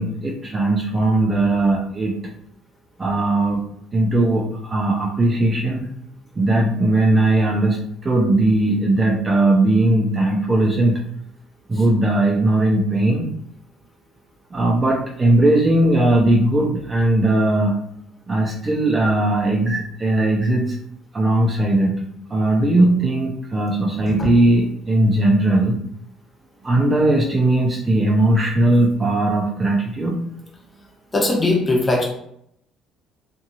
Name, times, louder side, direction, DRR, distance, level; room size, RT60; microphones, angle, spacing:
voice 1, 0.0-2.2 3.0-3.6 3.9-5.9 6.4-11.0 11.7-13.3 14.5-17.8 18.3-20.8 21.1-21.9 22.3-25.8 26.6-30.2, right 2 dB, 30° right, 0 dB, 0.5 m, -18 dB
voice 2, 31.1-32.0, left 2 dB, 25° left, -1 dB, 1.0 m, -19 dB
2.7 x 2.7 x 2.4 m, 0.72 s
hypercardioid pair, 55°, 0 cm